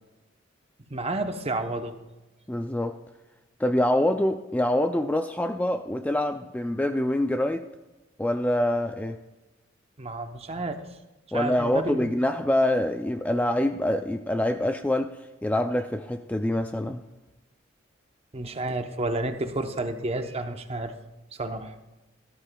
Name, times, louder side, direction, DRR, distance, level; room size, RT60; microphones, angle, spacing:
voice 1, 0.9-2.0 10.0-10.8 11.3-12.1 18.3-20.9 21.4-21.7, right 2 dB, 30° right, 7 dB, 0.8 m, -30 dB
voice 2, 2.5-3.0 3.6-7.6 8.2-9.2 11.3-17.0, left 1 dB, 10° left, 7 dB, 0.3 m, -25 dB
18.0 x 12.5 x 2.3 m, 1.1 s
head